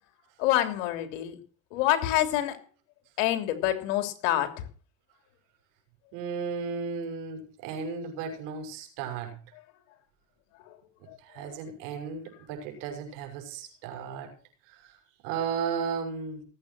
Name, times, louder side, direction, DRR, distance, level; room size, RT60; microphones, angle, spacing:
voice 1, 0.4-1.4 1.7-2.6 3.2-4.6 11.4-11.6, left 13 dB, 80° left, 7 dB, 3.3 m, -27 dB
voice 2, 6.1-9.3 11.3-14.3 14.8-14.9 15.2-16.4, right 6 dB, 80° right, 5 dB, 6.3 m, -34 dB
18.5 x 9.0 x 6.2 m, 0.40 s
supercardioid pair, 90°, 37 cm